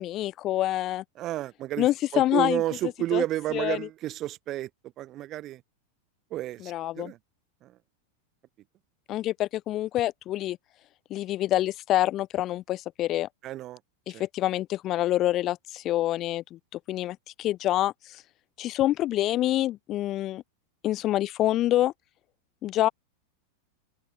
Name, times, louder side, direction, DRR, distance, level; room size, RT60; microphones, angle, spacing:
voice 1, 0.0-1.0 1.8-2.6 3.1-3.2 3.5-3.8 6.6-7.1 9.1-10.6 11.1-13.3 14.1-16.6 16.9-18.2 18.6-20.4 20.8-21.9 22.6-22.9, left 14 dB, 35° left, 0.8 m, -26 dB
voice 2, 1.1-5.6 6.3-7.2 7.6-7.8 13.4-13.8 14.1-14.3, right 14 dB, 35° right, 1.1 m, -31 dB
open air
figure-of-eight pair, 90°, 0 cm